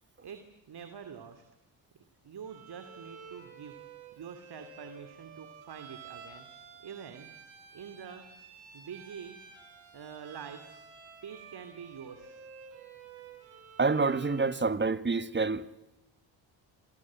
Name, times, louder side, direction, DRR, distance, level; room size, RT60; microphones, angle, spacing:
voice 1, 0.2-1.4 2.2-3.8 4.1-6.5 6.8-7.3 7.7-8.3 8.7-9.4 9.9-10.8 11.2-12.4, right 7 dB, 55° right, 2.9 m, -46 dB
Bowed string instrument, 2.4-14.6, right 6 dB, 80° right, 7.8 m, -51 dB
voice 2, 13.8-15.6, right 4 dB, 25° right, 1.6 m, -27 dB
27.5 x 27.0 x 7.6 m
supercardioid pair, 65°, 47 cm